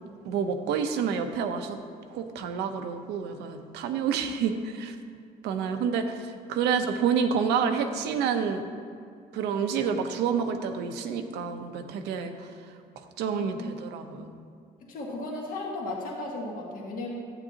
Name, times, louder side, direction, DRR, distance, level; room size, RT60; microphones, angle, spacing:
voice 1, 0.2-1.8 2.1-4.9 5.4-6.1 6.5-8.6 9.3-12.5 13.2-14.3, right 6 dB, 85° right, 6 dB, 0.8 m, -28 dB
voice 2, 5.6-5.9 13.2-13.7 14.1-14.2 14.8-17.1, left 2 dB, 55° left, -2 dB, 1.7 m, -36 dB
12.0 x 8.8 x 2.9 m, 2.2 s
cardioid pair, 110°, 17 cm